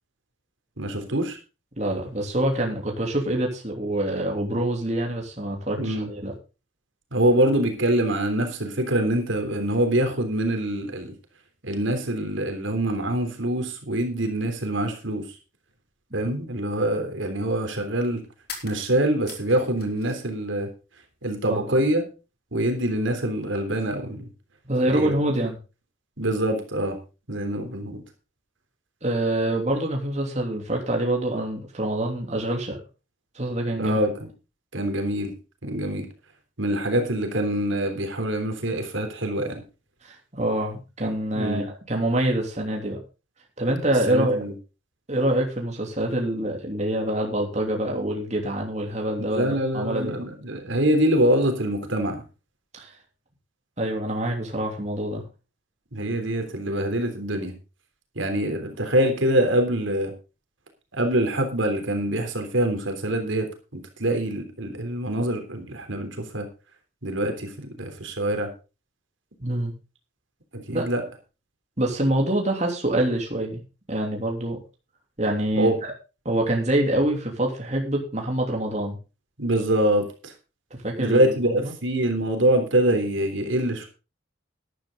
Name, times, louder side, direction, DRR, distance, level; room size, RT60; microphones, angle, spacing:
voice 1, 0.8-1.4 5.8-6.1 7.1-11.1 11.6-15.3 16.1-18.2 18.6-20.7 21.2-22.0 22.5-24.3 24.9-25.1 26.2-27.0 27.3-28.0 33.8-34.2 34.7-35.3 35.6-36.1 36.6-39.6 41.3-41.6 44.1-44.5 49.2-52.2 55.9-57.5 58.1-60.1 60.9-66.5 67.0-68.5 70.5-71.0 75.6-75.7 79.4-80.3 81.0-83.9, right 1 dB, 75° right, 5 dB, 3.3 m, -24 dB
voice 2, 1.8-6.3 21.4-21.8 24.7-25.6 29.0-32.8 33.3-34.0 40.0-43.0 43.6-44.4 45.1-50.1 52.7-52.9 53.8-55.2 69.4-69.7 70.7-70.9 71.8-73.6 73.9-74.6 75.2-75.9 76.2-79.0 80.8-81.7, right 1 dB, 35° right, 1 dB, 3.1 m, -26 dB
sound 1, 18.4-20.4 20.7-21.5, left 6 dB, 50° left, 3.8 m, -43 dB
13.0 x 12.0 x 3.8 m, 0.31 s
head